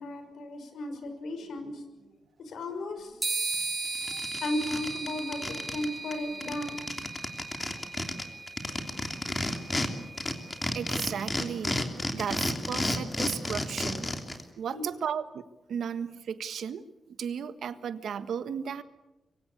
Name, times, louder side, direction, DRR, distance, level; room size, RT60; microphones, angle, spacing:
voice 1, 0.0-1.8 2.5-3.2 4.4-6.8 14.7-14.8, left 1 dB, 80° left, 7 dB, 6.2 m, -35 dB
sound 1, 3.2-10.9, right 3 dB, 20° right, 7.7 m, -37 dB
sound 2, 3.5-3.6 3.9-5.9 6.1-6.2 6.4-9.9 10.2-14.4, left 2 dB, 20° left, 3.1 m, -31 dB
voice 2, 10.7-11.8 12.1-14.1 14.6-15.4 15.7-18.8, right 7 dB, 80° right, 11 dB, 1.5 m, -35 dB
25.5 x 23.5 x 8.4 m, 0.96 s
wide cardioid pair, 130°, 0 cm